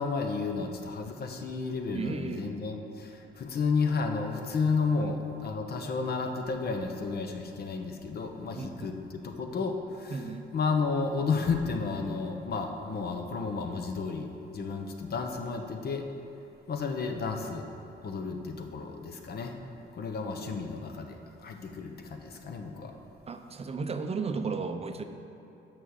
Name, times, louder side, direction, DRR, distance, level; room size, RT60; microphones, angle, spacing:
voice 1, 0.0-10.2 10.5-16.0 16.7-17.7 18.0-19.6 19.9-21.2 21.4-22.9, left 4 dB, 50° left, 4 dB, 0.8 m, -32 dB
voice 2, 1.9-2.5 5.0-5.1 8.6-8.9 10.1-10.5 23.3-25.0, right 4 dB, 30° right, 7 dB, 0.5 m, -34 dB
6.2 x 6.1 x 6.4 m, 2.9 s
cardioid pair, 90°, 20 cm